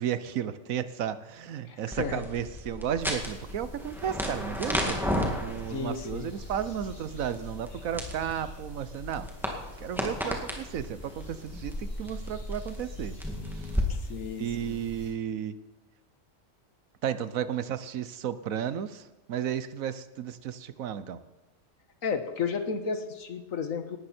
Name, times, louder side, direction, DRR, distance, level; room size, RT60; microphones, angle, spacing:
voice 1, 0.0-5.0 5.4-9.3 9.8-13.2 13.6-13.8 14.4-15.6 17.0-21.2, right 9 dB, 80° right, 14 dB, 1.2 m, -33 dB
voice 2, 1.7-2.2 5.7-6.3 13.8-14.8 22.0-24.0, left 5 dB, 75° left, 7 dB, 1.8 m, -33 dB
sound 1, 1.9-13.8, equal, ahead, 2.2 m, -35 dB
sound 2, 3.0-15.1, left 2 dB, 45° left, 6.3 m, -46 dB
18.5 x 13.0 x 4.4 m, 1.1 s
omnidirectional pair, 1.4 m